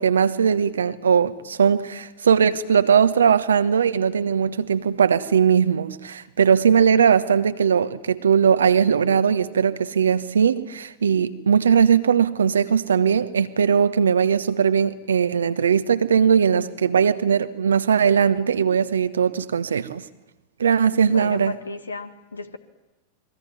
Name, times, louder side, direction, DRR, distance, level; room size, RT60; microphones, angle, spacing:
voice 1, 0.0-20.0 20.6-21.5, right 7 dB, 70° right, 12 dB, 1.2 m, -19 dB
voice 2, 21.1-22.6, left 3 dB, 75° left, 11 dB, 1.8 m, -34 dB
29.0 x 21.5 x 9.4 m, 0.99 s
figure-of-eight pair, 90°, 0 cm